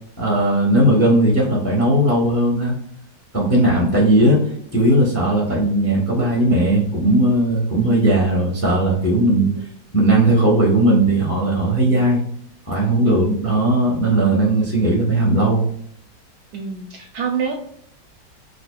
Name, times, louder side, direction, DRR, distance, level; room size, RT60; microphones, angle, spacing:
voice 1, 0.2-2.7 3.3-4.4 4.7-9.5 9.9-12.2 12.7-15.7, right 1 dB, 10° left, -2 dB, 0.7 m, -17 dB
voice 2, 7.7-8.2 9.4-9.7 13.0-13.5 16.5-17.5, right 4 dB, 70° right, 3 dB, 1.0 m, -28 dB
5.1 x 2.4 x 2.3 m, 0.67 s
omnidirectional pair, 1.9 m